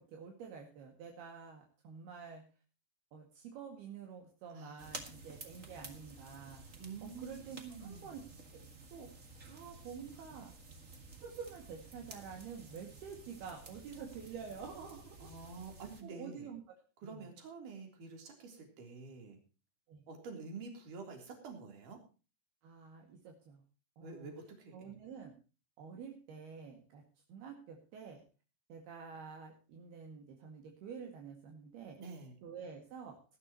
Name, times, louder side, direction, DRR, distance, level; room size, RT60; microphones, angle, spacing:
voice 1, 0.0-2.4 3.1-6.6 7.0-8.2 8.5-10.5 11.2-15.3 16.0-16.6 17.0-17.2 19.9-20.0 22.6-23.6 24.0-24.3 24.7-25.3 25.8-27.0 27.3-28.2 28.7-32.0 32.4-33.2, right 6 dB, 70° right, 2 dB, 4.0 m, -48 dB
sound 1, 4.8-16.0, right 3 dB, 30° right, 1.4 m, -52 dB
voice 2, 6.8-8.1 15.2-16.5 17.0-19.4 20.1-22.0 24.0-25.0 32.0-32.3, right 4 dB, 50° right, 4 dB, 4.8 m, -48 dB
19.5 x 12.0 x 3.0 m, 0.34 s
omnidirectional pair, 4.8 m